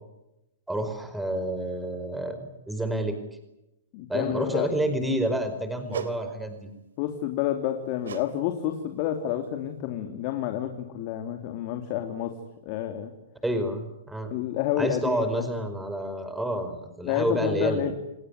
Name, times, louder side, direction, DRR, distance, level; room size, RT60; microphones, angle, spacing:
voice 1, 0.7-3.2 4.1-6.7 13.4-14.3 14.8-17.9, right 1 dB, 5° right, 8 dB, 5.0 m, -29 dB
voice 2, 3.9-4.7 7.0-12.3 12.6-13.1 14.3-15.4 17.0-17.9, left 11 dB, 45° left, 6 dB, 3.1 m, -29 dB
sound 1, 5.9-6.2 8.0-8.3 8.6-8.9 9.4-9.5, right 7 dB, 75° right, 3.3 m, -35 dB
29.0 x 19.0 x 9.8 m, 0.90 s
hypercardioid pair, 115°, 0 cm